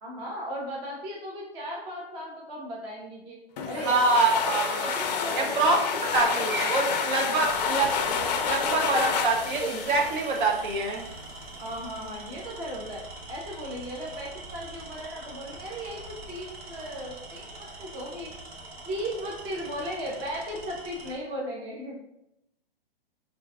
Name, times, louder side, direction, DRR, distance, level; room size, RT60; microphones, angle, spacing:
voice 1, 0.0-3.4 3.7-4.1 4.7-5.6 6.0-6.6 7.4-7.7 11.6-18.3 18.9-22.0, equal, 15° right, -3 dB, 0.5 m, -36 dB
sound 1, 3.6-11.0, left 6 dB, 45° left, 0.4 m, -29 dB
voice 2, 3.8-4.9 5.3-5.8 6.1-11.1, right 3 dB, 55° right, 2 dB, 0.8 m, -25 dB
Tools, 6.3-6.6 7.4-21.2, right 2 dB, 80° right, 1.0 m, -44 dB
4.4 x 2.6 x 2.3 m, 0.82 s
hypercardioid pair, 140°, 30 cm